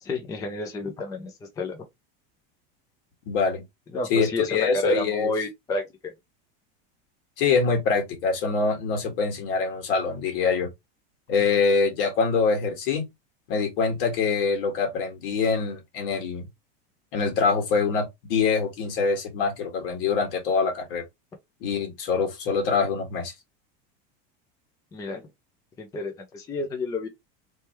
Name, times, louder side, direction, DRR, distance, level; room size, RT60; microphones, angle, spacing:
voice 1, 0.0-1.8 3.9-6.1 24.9-25.3 25.8-27.1, left 2 dB, 10° left, 0.5 m, -30 dB
voice 2, 3.3-3.6 4.1-5.3 7.4-10.7 11.3-13.1 13.5-16.5 17.1-21.0 21.6-23.3, left 5 dB, 65° left, 1.9 m, -24 dB
3.3 x 3.3 x 3.0 m
supercardioid pair, 170°, 30 cm